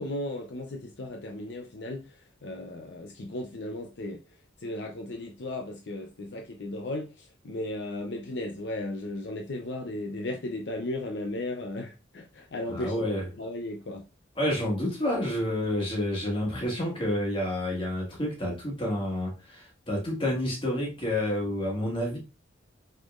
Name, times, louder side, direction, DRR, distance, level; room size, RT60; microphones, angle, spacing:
voice 1, 0.0-2.1 2.4-4.2 4.6-13.0 13.4-14.0, left 1 dB, 65° left, 0.6 m, -35 dB
voice 2, 12.7-13.3 14.4-22.2, left 1 dB, 25° left, 1.6 m, -29 dB
5.0 x 4.0 x 2.4 m
head